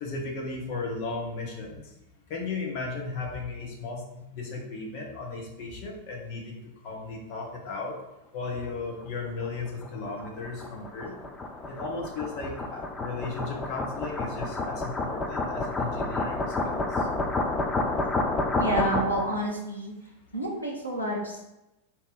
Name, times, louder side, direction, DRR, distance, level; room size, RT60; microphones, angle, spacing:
voice 1, 0.0-1.8 2.3-6.6 6.8-7.9 8.3-11.2 11.7-17.1, left 3 dB, 45° left, 0 dB, 1.1 m, -35 dB
sound 1, 9.4-19.4, left 2 dB, 15° left, 0.5 m, -30 dB
voice 2, 18.6-19.9 20.3-21.4, right 1 dB, 90° left, -3 dB, 0.9 m, -29 dB
3.8 x 2.9 x 3.9 m, 0.93 s
figure-of-eight pair, 90°, 0 cm